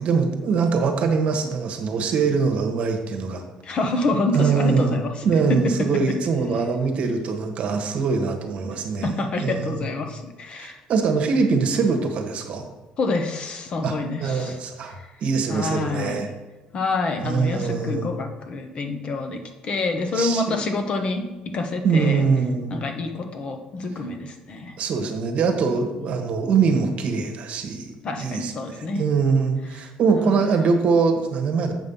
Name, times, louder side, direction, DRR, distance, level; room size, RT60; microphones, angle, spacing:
voice 1, 0.0-3.4 4.3-9.9 10.6-12.7 13.8-15.0 15.2-16.3 17.2-18.0 20.1-20.6 21.8-22.8 24.8-31.7, right 5 dB, 55° right, 5 dB, 1.2 m, -23 dB
voice 2, 3.6-5.1 5.5-5.9 9.0-10.8 13.0-14.6 15.0-15.1 15.5-16.2 16.7-22.2 22.7-24.8 26.0-26.1 28.0-29.1 30.2-30.4, left 2 dB, 45° left, 5 dB, 1.1 m, -27 dB
7.8 x 5.3 x 5.5 m, 1.1 s
cardioid pair, 115°, 3 cm